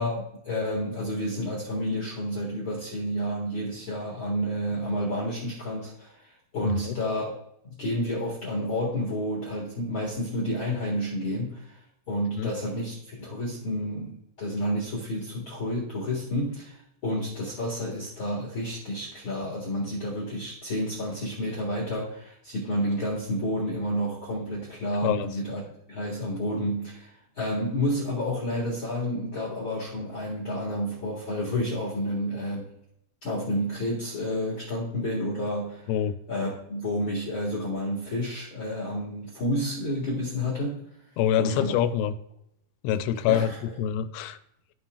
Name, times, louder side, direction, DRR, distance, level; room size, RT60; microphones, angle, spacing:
voice 1, 0.0-7.4 7.6-11.8 12.1-25.6 25.9-32.7 33.2-35.9 36.3-40.8 41.4-41.7 43.3-43.6, equal, 70° left, -5 dB, 1.2 m, -30 dB
voice 2, 6.6-7.0 12.4-12.5 25.0-25.3 35.9-36.1 41.2-42.1 42.8-43.5 43.8-44.4, left 10 dB, 85° left, 10 dB, 3.0 m, -25 dB
14.0 x 5.6 x 2.4 m, 0.76 s
omnidirectional pair, 5.5 m